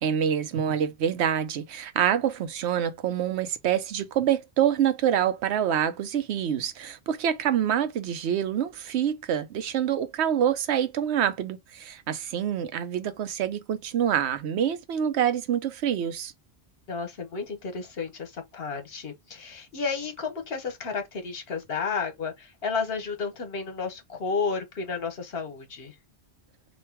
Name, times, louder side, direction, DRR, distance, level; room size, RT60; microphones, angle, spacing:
voice 1, 0.0-16.3, right 9 dB, 85° right, 0.9 m, -26 dB
voice 2, 16.9-25.9, left 5 dB, 65° left, 1.1 m, -32 dB
3.1 x 2.4 x 4.4 m
omnidirectional pair, 1.1 m